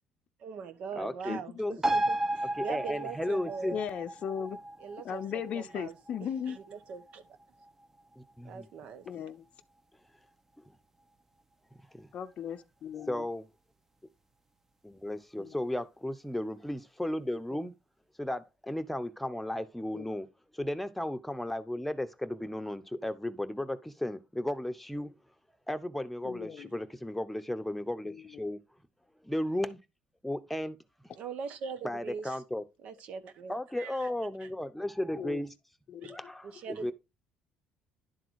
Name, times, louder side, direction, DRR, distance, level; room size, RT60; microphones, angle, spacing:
voice 1, 0.4-3.8 4.8-5.9 6.2-7.3 8.4-9.1 31.1-32.4 32.8-34.1 34.4-34.5 36.0-36.1 36.4-36.9, right 6 dB, 65° right, 1.2 m, -41 dB
voice 2, 1.0-1.8 2.6-3.8 8.2-8.7 10.6-10.7 12.0-12.1 13.1-13.5 14.8-17.7 18.2-20.3 20.5-25.2 25.7-28.6 29.2-29.8 30.2-30.8 31.8-32.6 33.5-35.5 36.1-36.9, left 1 dB, 5° left, 1.0 m, -35 dB
sound 1, 1.8-8.8 9.1-9.2, right 1 dB, 15° right, 0.8 m, -35 dB
voice 3, 3.7-4.6 5.0-6.6 9.1-9.5 12.1-13.3 15.4-15.5 19.9-20.0 26.2-26.7 28.0-28.2 35.1-35.4 35.9-36.2, left 8 dB, 55° left, 0.6 m, -37 dB
11.0 x 3.8 x 4.7 m
supercardioid pair, 80°, 2 cm